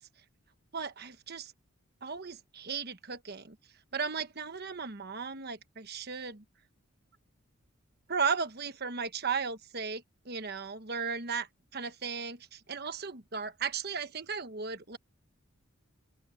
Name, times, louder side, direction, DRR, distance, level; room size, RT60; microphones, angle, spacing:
voice 1, 0.7-1.5 2.0-3.6 3.9-6.4 8.1-11.5 11.7-15.0, right 5 dB, 50° right, 1.2 m, -36 dB
open air
head